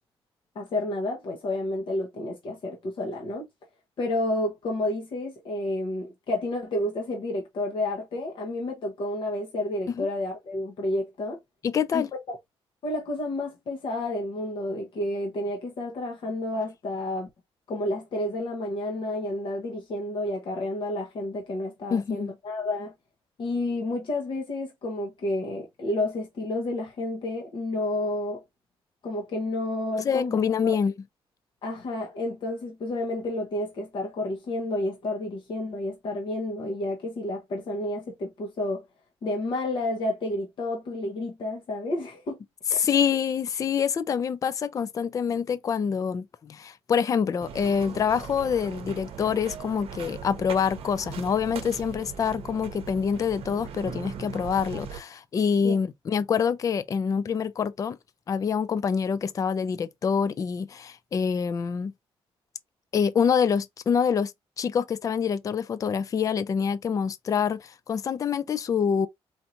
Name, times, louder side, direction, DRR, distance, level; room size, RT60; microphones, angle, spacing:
voice 1, 0.5-3.4 4.0-11.4 11.9-12.4 12.8-17.3 17.7-22.9 23.4-28.4 29.0-30.4 30.6-30.7 31.6-38.8 39.2-42.4 42.7-42.8 55.6-55.8, left 1 dB, 55° left, 1.1 m, -30 dB
voice 2, 11.6-12.1 21.9-22.3 30.0-30.9 42.7-58.0 58.3-61.9 62.9-64.3 64.6-69.1, left 7 dB, 35° left, 0.4 m, -26 dB
Steps sand, 47.4-55.0, right 7 dB, 75° right, 0.7 m, -39 dB
4.4 x 2.8 x 2.5 m
cardioid pair, 135°, 10 cm